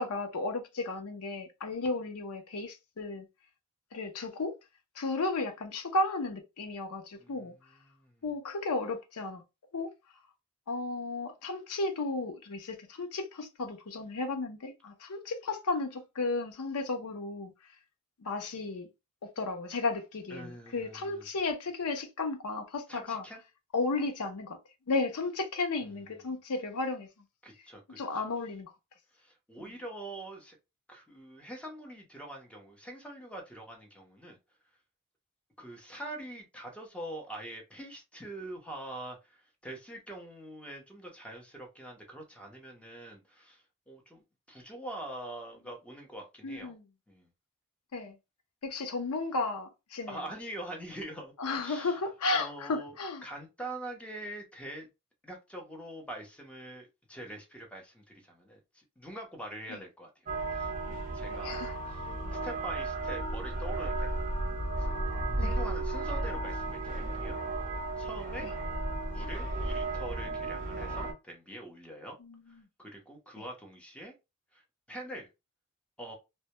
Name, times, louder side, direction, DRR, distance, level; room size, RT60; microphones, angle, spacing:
voice 1, 0.0-3.3 3.9-4.6 5.0-7.5 8.2-9.4 9.7-9.9 10.7-17.5 18.2-18.9 19.2-23.2 23.7-24.6 24.9-27.1 28.0-28.7 29.6-29.7 46.4-46.8 47.9-48.2 48.6-50.2 51.4-53.2 59.7-59.8 61.3-61.7 65.4-65.5 72.2-72.7, left 3 dB, 85° left, 0.6 m, -34 dB
voice 2, 7.2-8.2 20.3-21.3 22.9-23.4 27.4-28.2 29.1-30.6 30.9-34.4 35.6-46.8 47.1-47.3 50.1-52.0 52.3-52.9 53.2-54.9 55.2-60.1 60.5-64.2 64.8-68.5 69.1-72.2 72.5-74.1 74.5-74.6 74.9-75.3 76.0-76.1, right 1 dB, 5° left, 0.7 m, -44 dB
sound 1, 60.3-71.1, right 2 dB, 35° right, 0.7 m, -34 dB
2.1 x 2.1 x 2.8 m
head